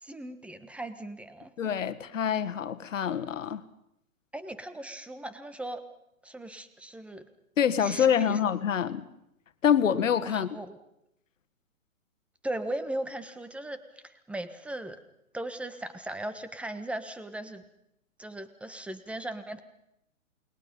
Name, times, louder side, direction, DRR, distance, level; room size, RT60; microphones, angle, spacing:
voice 1, 0.0-1.5 4.3-5.8 6.2-7.3 7.8-8.4 10.2-10.8 12.4-15.0 15.3-17.6 18.2-19.6, right 1 dB, 5° right, 1.4 m, -38 dB
voice 2, 1.6-3.6 7.6-9.1 9.6-10.6, left 8 dB, 65° left, 1.7 m, -26 dB
29.0 x 21.0 x 5.5 m
figure-of-eight pair, 125°, 42 cm